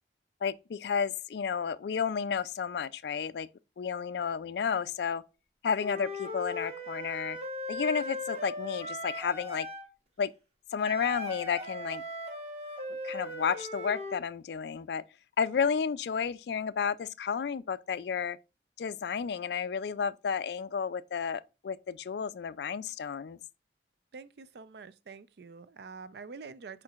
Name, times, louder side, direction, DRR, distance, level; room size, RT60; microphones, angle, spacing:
voice 1, 0.4-3.5 3.8-5.2 5.6-7.4 7.7-9.7 10.2-10.3 10.7-12.0 13.0-15.0 15.4-18.4 18.8-23.4, left 6 dB, 65° left, 0.3 m, -32 dB
Wind instrument woodwind instrument, 5.8-9.9 10.8-14.2, left 1 dB, 35° right, 1.1 m, -38 dB
voice 2, 24.1-26.8, right 5 dB, 60° right, 0.4 m, -46 dB
5.0 x 4.4 x 2.4 m
head